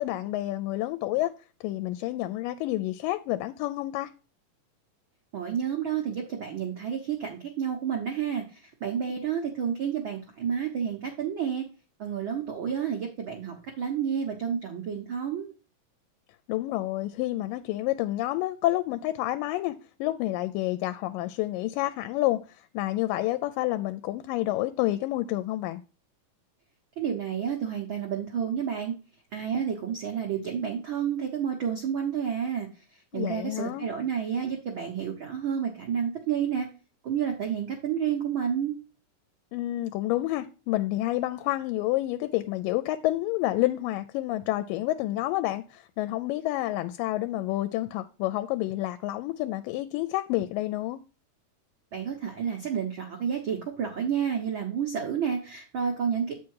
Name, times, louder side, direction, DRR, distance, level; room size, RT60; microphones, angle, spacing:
voice 1, 0.0-1.3 1.6-4.1 9.1-9.3 16.5-25.8 33.1-33.9 39.5-51.0, left 16 dB, 85° left, 2.2 m, -29 dB
voice 2, 5.3-11.6 12.0-15.5 27.0-28.9 29.3-32.7 33.1-36.7 37.0-38.7 51.9-56.3, right 8 dB, 85° right, 1.1 m, -30 dB
8.3 x 5.0 x 4.6 m
omnidirectional pair, 3.9 m